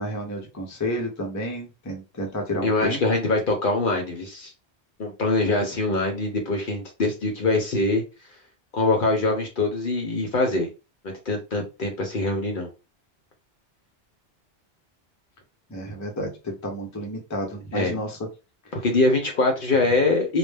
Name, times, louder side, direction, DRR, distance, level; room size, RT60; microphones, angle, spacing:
voice 1, 0.0-3.0 15.7-18.2 18.8-18.9, equal, 20° left, 1 dB, 0.5 m, -31 dB
voice 2, 2.6-4.5 5.0-8.0 8.7-10.7 11.3-12.7 17.7-17.9 18.7-20.4, left 2 dB, 55° left, 3 dB, 0.7 m, -23 dB
2.2 x 2.1 x 3.2 m, 0.29 s
omnidirectional pair, 1.1 m